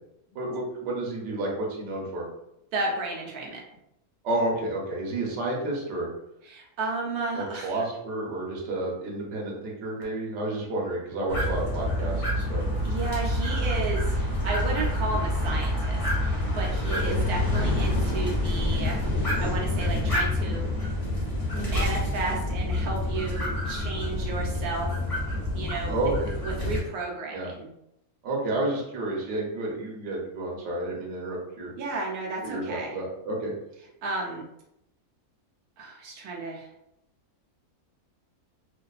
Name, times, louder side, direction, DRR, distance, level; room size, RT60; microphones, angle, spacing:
voice 1, 0.3-2.2 4.2-6.1 7.3-12.6 16.9-17.2 25.9-26.3 27.3-27.5 28.2-31.7 32.4-33.5, right 2 dB, 60° right, -3 dB, 0.9 m, -30 dB
voice 2, 2.7-3.6 6.4-7.7 12.8-20.7 21.5-24.9 25.5-26.0 26.4-27.7 31.8-32.9 34.0-34.4 35.8-36.7, right 3 dB, 85° right, -1 dB, 1.1 m, -33 dB
sound 1, 11.3-26.8, left 1 dB, 35° left, 0.6 m, -27 dB
2.5 x 2.3 x 2.3 m, 0.81 s
omnidirectional pair, 1.6 m